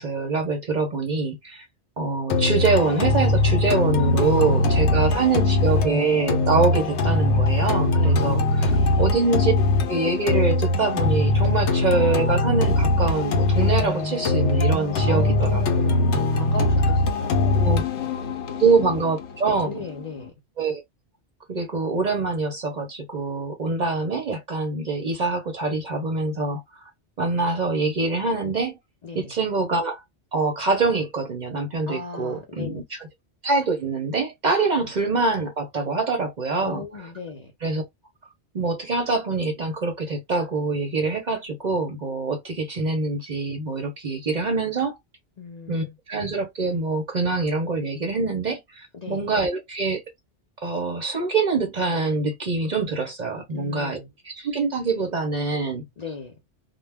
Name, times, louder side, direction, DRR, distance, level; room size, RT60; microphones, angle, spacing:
voice 1, 0.0-1.7 2.0-8.7 9.0-9.5 9.9-15.8 17.4-17.8 18.6-19.7 20.6-20.8 21.5-26.6 27.2-28.7 29.1-30.0 30.3-32.8 33.4-36.8 37.6-37.8 38.5-45.0 45.7-50.0 50.6-54.0 54.3-55.8, right 3 dB, 50° right, 0.6 m, -24 dB
sound 1, 2.3-20.3, left 2 dB, 75° left, 0.9 m, -21 dB
voice 2, 4.4-5.3 7.9-8.4 8.7-9.1 15.1-18.2 18.5-18.7 19.6-20.3 29.0-29.3 31.9-32.8 34.8-34.9 36.6-37.5 45.4-46.0 48.9-49.3 53.5-54.1 56.0-56.4, left 3 dB, 45° left, 0.6 m, -37 dB
2.2 x 2.1 x 3.3 m
omnidirectional pair, 1.2 m